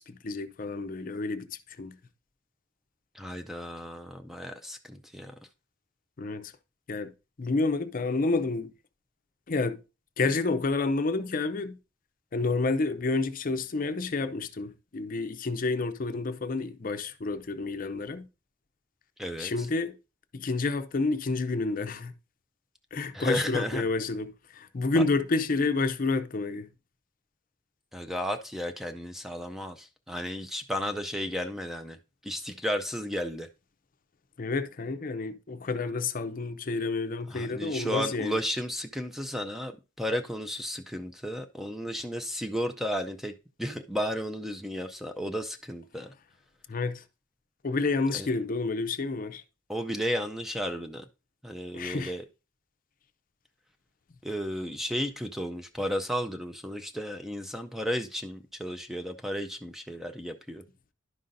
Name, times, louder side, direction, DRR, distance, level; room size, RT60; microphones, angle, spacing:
voice 1, 0.0-2.0 6.2-6.5 6.9-7.1 7.4-8.7 9.5-9.8 10.2-11.8 12.3-18.3 19.4-20.0 20.3-22.1 22.9-26.7 34.4-38.4 46.7-47.0 47.6-49.4 51.7-52.1, left 3 dB, 45° left, 0.6 m, -29 dB
voice 2, 3.1-5.3 19.2-19.5 23.1-23.9 24.9-25.0 27.9-32.0 32.2-33.5 37.3-43.3 43.6-46.1 48.1-48.3 49.7-51.1 51.4-52.2 54.2-60.6, equal, ahead, 0.4 m, -33 dB
11.0 x 5.4 x 2.6 m
head